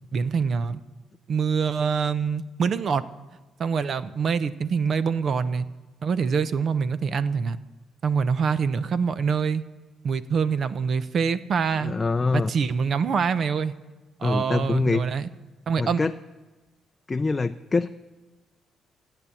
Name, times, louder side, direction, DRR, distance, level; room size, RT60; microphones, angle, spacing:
voice 1, 0.1-0.8 1.3-3.0 3.6-5.6 6.0-7.6 8.0-9.6 10.0-11.9 12.3-13.7 14.2-15.3 15.7-16.0, right 6 dB, 55° right, 14 dB, 0.7 m, -25 dB
voice 2, 11.8-12.5 14.2-15.1 15.8-16.1 17.1-17.9, left 3 dB, 25° left, 8 dB, 0.4 m, -24 dB
15.0 x 8.9 x 8.4 m, 1.2 s
cardioid pair, 90°, 0 cm